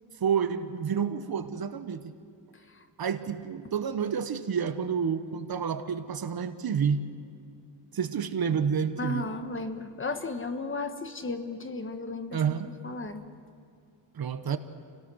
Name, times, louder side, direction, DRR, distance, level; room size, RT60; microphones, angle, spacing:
voice 1, 0.2-2.1 3.0-7.1 7.9-9.3 12.3-12.7 14.1-14.6, right 7 dB, 55° right, 10 dB, 1.2 m, -29 dB
voice 2, 9.0-12.4 12.8-13.2, left 3 dB, 30° left, 8 dB, 1.3 m, -34 dB
28.5 x 17.5 x 6.3 m, 2.4 s
wide cardioid pair, 120°, 43 cm